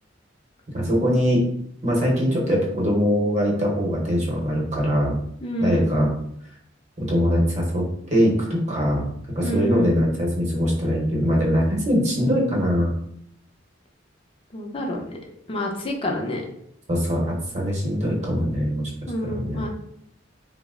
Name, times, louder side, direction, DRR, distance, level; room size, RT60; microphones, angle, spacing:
voice 1, 0.7-1.5 1.8-5.2 5.6-6.1 7.0-9.0 9.3-12.9 16.9-18.9 19.3-19.6, equal, 35° right, -3 dB, 0.9 m, -22 dB
voice 2, 5.4-5.9 9.4-9.9 14.5-15.0 15.5-16.4 19.1-19.7, left 1 dB, 30° left, 0 dB, 0.5 m, -27 dB
2.8 x 2.0 x 3.5 m, 0.70 s
head